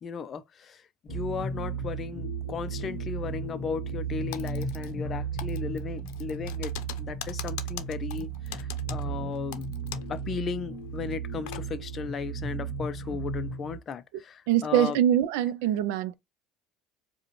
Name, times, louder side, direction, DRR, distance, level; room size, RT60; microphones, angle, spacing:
voice 1, 0.0-9.7 10.1-15.0, left 6 dB, 25° left, 0.4 m, -36 dB
sound 1, 1.1-13.8, right 4 dB, ahead, 1.7 m, -35 dB
Typing, 4.3-5.1 5.4-10.2 10.5-10.6 11.1-11.6, left 12 dB, 80° left, 0.6 m, -41 dB
voice 2, 14.5-16.1, right 11 dB, 80° right, 0.4 m, -24 dB
4.9 x 2.2 x 3.1 m
cardioid pair, 170°, 0 cm